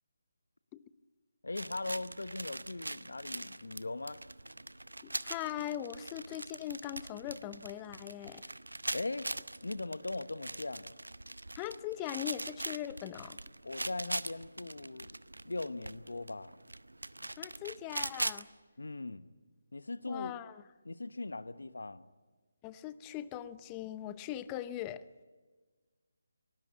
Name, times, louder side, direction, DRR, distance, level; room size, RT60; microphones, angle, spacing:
voice 1, 1.4-4.2 8.9-9.3 9.6-10.9 13.6-15.2 15.4-16.6 18.8-19.3 19.7-20.3 20.8-22.1, left 2 dB, 75° left, 1.2 m, -39 dB
sound 1, 1.6-18.4, right 2 dB, 85° right, 0.7 m, -42 dB
voice 2, 5.0-8.4 11.6-13.4 17.4-18.5 20.1-20.6 22.6-25.0, left 12 dB, 15° left, 0.7 m, -40 dB
25.0 x 19.0 x 8.5 m
figure-of-eight pair, 155°, 0 cm